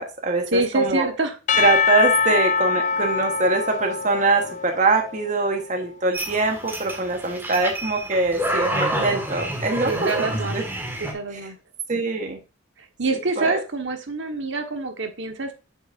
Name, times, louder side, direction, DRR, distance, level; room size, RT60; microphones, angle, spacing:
voice 1, 0.0-1.1 1.6-10.6 11.3-11.5 11.9-12.4 13.4-13.6, right 3 dB, 40° right, 3 dB, 1.2 m, -23 dB
voice 2, 0.5-1.4 2.3-2.4 9.8-10.6 11.0-11.6 13.0-15.5, right 3 dB, 60° right, 5 dB, 1.3 m, -26 dB
Percussion / Church bell, 1.5-5.7, left 5 dB, 35° left, 0.3 m, -24 dB
sound 1, 6.1-11.1, right 1 dB, 10° right, 1.7 m, -28 dB
8.0 x 6.9 x 2.6 m, 0.31 s
head